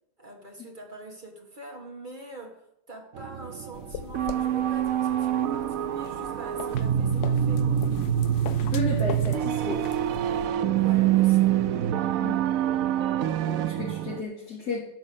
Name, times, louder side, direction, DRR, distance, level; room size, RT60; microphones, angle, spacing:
voice 1, 0.2-7.9 10.8-11.5, right 2 dB, 30° right, 1.7 m, -44 dB
sound 1, 3.2-14.2, right 10 dB, 65° right, 0.9 m, -25 dB
sound 2, 3.7-10.5, left 10 dB, 85° left, 1.3 m, -41 dB
voice 2, 8.6-9.8 12.2-12.4 13.5-14.8, left 3 dB, 55° left, 4.0 m, -33 dB
12.5 x 5.4 x 8.6 m
omnidirectional pair, 1.9 m